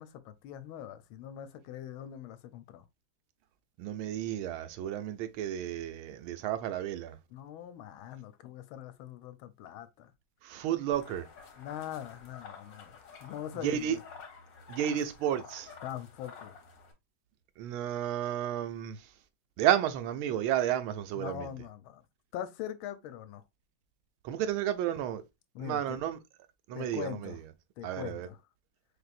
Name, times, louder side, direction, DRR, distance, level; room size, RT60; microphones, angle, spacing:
voice 1, 0.0-2.8 7.3-10.1 11.6-14.0 15.8-16.5 21.1-22.0 22.3-23.4 25.5-26.0 26.7-27.4 27.8-28.4, left 11 dB, 80° left, 1.4 m, -42 dB
voice 2, 3.8-7.2 10.4-11.3 13.6-14.0 14.7-15.7 17.6-19.1 19.6-21.5 24.2-25.2 25.6-26.2 26.7-27.3 27.8-28.3, right 10 dB, 85° right, 1.5 m, -32 dB
sound 1, 10.9-16.9, left 5 dB, 65° left, 1.7 m, -50 dB
4.7 x 3.4 x 2.4 m
omnidirectional pair, 2.2 m